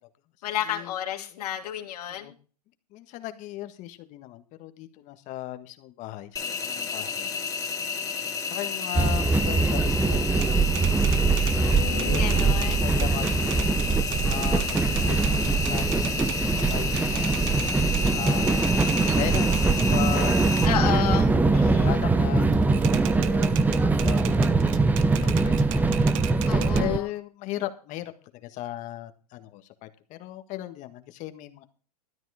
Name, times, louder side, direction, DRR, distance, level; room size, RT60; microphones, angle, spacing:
voice 1, 0.4-2.3 11.5-12.8 20.6-21.9 26.5-27.1, left 11 dB, 75° left, 2 dB, 2.4 m, -31 dB
voice 2, 2.9-7.3 8.5-11.0 11.5-13.3 14.2-16.3 16.5-17.4 18.1-18.6 19.0-20.4 20.7-21.2 21.6-22.5 23.9-24.8 25.1-26.2 26.7-31.6, left 15 dB, 40° left, 9 dB, 1.6 m, -37 dB
Engine, 6.4-20.7, left 5 dB, 15° left, 2.2 m, -31 dB
sound 1, 8.9-27.0, right 3 dB, 10° right, 0.8 m, -23 dB
Typewriter, 10.3-20.0 20.4-22.2 22.5-26.8, right 13 dB, 55° right, 1.0 m, -38 dB
13.5 x 9.1 x 5.0 m, 0.38 s
hypercardioid pair, 130°, 20 cm